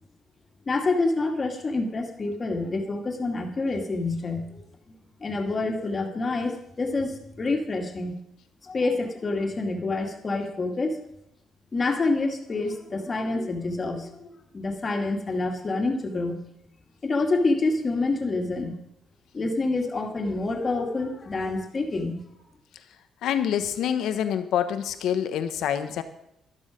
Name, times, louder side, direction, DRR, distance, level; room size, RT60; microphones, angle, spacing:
voice 1, 0.7-4.9 5.2-8.2 8.6-11.0 11.7-16.4 17.0-18.7 19.3-22.2, left 3 dB, 35° left, 3 dB, 2.4 m, -27 dB
voice 2, 23.2-26.0, left 9 dB, 80° left, 9 dB, 1.2 m, -26 dB
12.0 x 12.0 x 5.2 m, 0.80 s
cardioid pair, 90°, 0 cm